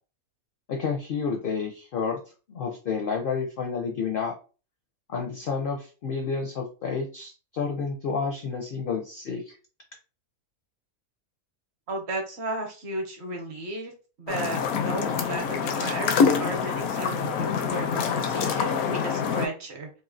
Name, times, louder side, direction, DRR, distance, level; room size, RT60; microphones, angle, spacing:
voice 1, 0.7-2.2 2.5-4.3 5.1-9.5, left 5 dB, 60° left, 1 dB, 0.6 m, -30 dB
voice 2, 11.9-19.9, right 2 dB, 55° right, 2 dB, 0.9 m, -34 dB
sound 1, 14.3-19.5, left 6 dB, 80° left, 1.0 m, -26 dB
3.0 x 2.7 x 2.6 m, 0.35 s
omnidirectional pair, 1.5 m